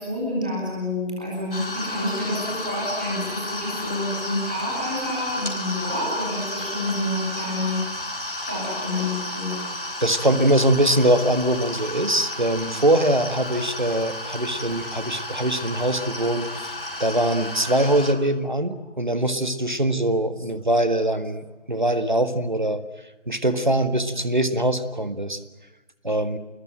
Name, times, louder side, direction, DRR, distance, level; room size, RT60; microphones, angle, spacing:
voice 1, 0.0-7.8 8.4-9.6, left 1 dB, 5° right, -5 dB, 2.7 m, -28 dB
sound 1, 1.5-18.1, left 1 dB, 45° left, 4.4 m, -32 dB
voice 2, 10.0-16.7 17.0-22.8 23.3-25.4 26.0-26.4, right 1 dB, 40° right, 10 dB, 1.7 m, -22 dB
28.0 x 20.5 x 8.9 m, 1.1 s
figure-of-eight pair, 175°, 37 cm